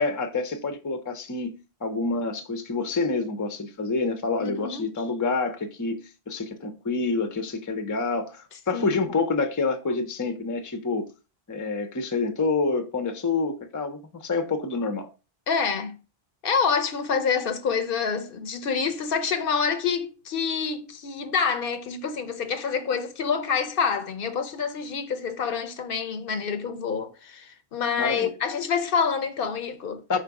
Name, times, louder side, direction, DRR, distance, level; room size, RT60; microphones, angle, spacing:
voice 1, 0.0-11.1 11.5-15.1 28.0-28.3 30.1-30.2, left 3 dB, 25° left, 0.4 m, -27 dB
voice 2, 4.4-4.9 8.7-9.1 15.5-16.0 16.4-30.0, left 6 dB, 65° left, 0.7 m, -27 dB
4.4 x 2.5 x 4.6 m
omnidirectional pair, 1.0 m